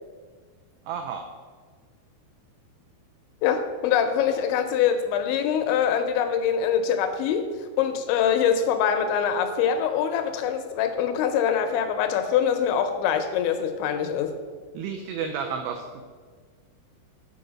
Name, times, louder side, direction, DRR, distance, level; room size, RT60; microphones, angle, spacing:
voice 1, 0.9-1.2 14.7-16.0, right 6 dB, 85° right, 4 dB, 2.3 m, -31 dB
voice 2, 3.4-7.5 7.8-14.3, left 8 dB, 80° left, 7 dB, 2.7 m, -24 dB
7.9 x 5.2 x 6.2 m, 1.5 s
omnidirectional pair, 5.5 m